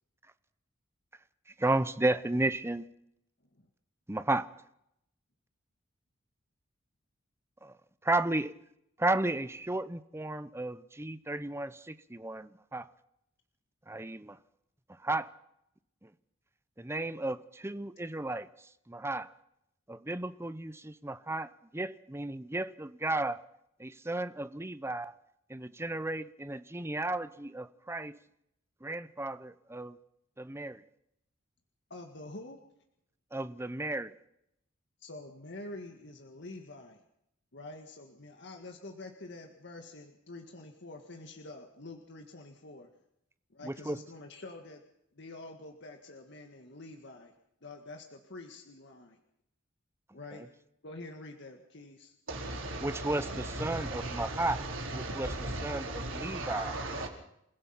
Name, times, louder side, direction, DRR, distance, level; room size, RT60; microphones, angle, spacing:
voice 1, 1.6-2.8 4.1-4.5 7.6-7.7 8.0-8.5 9.0-12.9 13.9-14.4 15.0-15.3 16.0-16.1 16.8-18.5 18.9-19.3 19.9-23.4 23.8-25.1 25.5-28.2 28.8-30.0 30.4-30.8 33.3-34.1 43.6-44.0 52.8-54.6 54.9-55.3 55.6-56.7, right 2 dB, 15° right, 14 dB, 0.8 m, -33 dB
voice 2, 31.9-32.6 35.0-37.0 37.5-43.0 43.5-44.8 45.1-47.3 47.6-49.2 50.1-50.5 50.8-52.1, left 2 dB, 65° left, 4 dB, 1.9 m, -47 dB
voice 3, 52.3-57.1, right 2 dB, 85° right, 2 dB, 4.3 m, -37 dB
29.0 x 16.0 x 5.8 m, 0.78 s
head